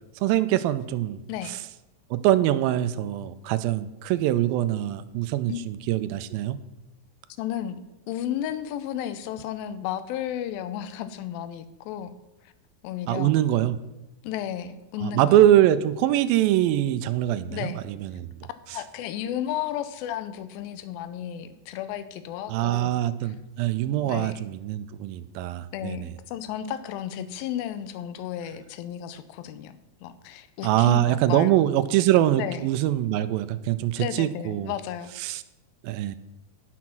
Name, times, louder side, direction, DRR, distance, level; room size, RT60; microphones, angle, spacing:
voice 1, 0.2-1.2 1.5-1.6 2.1-6.6 13.1-13.8 15.0-18.3 22.5-26.1 30.6-34.7 35.2-35.4 35.8-36.2, right 13 dB, 85° right, 13 dB, 2.3 m, -23 dB
voice 2, 7.4-12.1 12.4-12.5 12.8-13.3 14.2-15.4 17.5-17.8 18.7-22.9 23.2-23.3 24.0-24.4 25.7-29.7 30.0-31.5 32.3-32.7 34.0-35.1, left 10 dB, 80° left, 12 dB, 2.5 m, -33 dB
11.0 x 6.1 x 5.9 m, 1.0 s
omnidirectional pair, 4.2 m